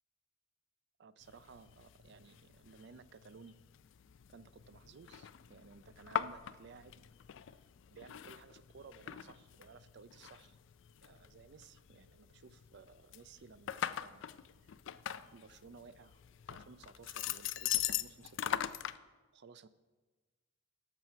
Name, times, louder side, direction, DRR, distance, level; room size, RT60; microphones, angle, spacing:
voice 1, 1.0-3.6 4.3-7.1 7.5-7.6 7.9-10.6 11.0-14.8 15.3-16.2 16.5-19.7, right 5 dB, 60° right, 15 dB, 0.5 m, -57 dB
sound 1, 1.2-19.0, left 10 dB, 65° left, 0.4 m, -42 dB
13.0 x 6.2 x 5.7 m, 1.3 s
head